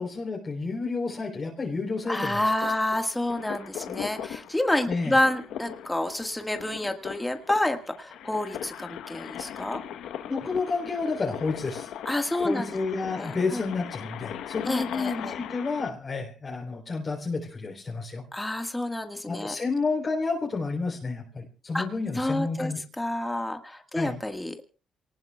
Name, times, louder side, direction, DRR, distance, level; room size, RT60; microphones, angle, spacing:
voice 1, 0.0-2.5 4.9-5.2 10.3-11.9 12.4-18.2 19.2-22.8 23.9-24.2, left 4 dB, 35° left, -1 dB, 3.9 m, -30 dB
voice 2, 2.1-9.8 12.0-12.7 13.1-13.6 14.7-15.3 18.3-19.5 21.7-21.8 22.1-22.7 23.0-24.6, left 1 dB, 10° left, 6 dB, 1.7 m, -29 dB
sound 1, 2.6-15.9, left 9 dB, 80° left, 1.0 m, -39 dB
27.5 x 19.0 x 2.3 m, 0.34 s
cardioid pair, 90°, 0 cm